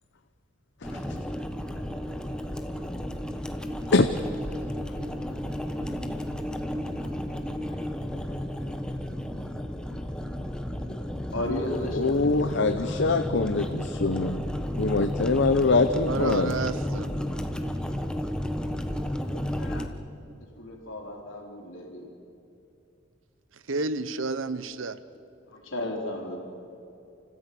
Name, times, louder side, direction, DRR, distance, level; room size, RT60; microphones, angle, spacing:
sound 1, 0.8-19.9, equal, 5° left, 1.2 m, -32 dB
voice 1, 11.3-12.7 20.6-22.1 25.5-26.4, left 1 dB, 80° left, 3.9 m, -34 dB
voice 2, 11.9-16.6 19.6-19.9, left 3 dB, 65° left, 0.8 m, -24 dB
voice 3, 16.1-17.1 23.7-25.0, right 3 dB, 75° right, 0.9 m, -30 dB
29.0 x 15.0 x 8.4 m
head